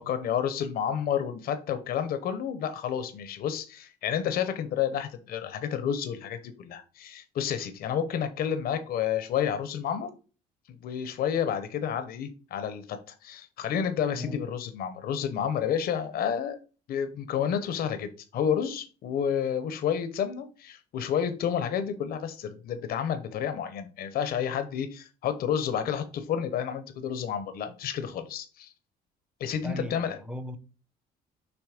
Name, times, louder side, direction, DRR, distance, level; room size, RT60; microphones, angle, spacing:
voice 1, 0.0-10.1 10.7-16.6 16.9-28.7 29.4-30.2, left 8 dB, 60° left, 0.8 m, -30 dB
voice 2, 29.6-30.6, equal, 5° right, 0.7 m, -37 dB
6.2 x 3.1 x 4.9 m
cardioid pair, 110°, 17 cm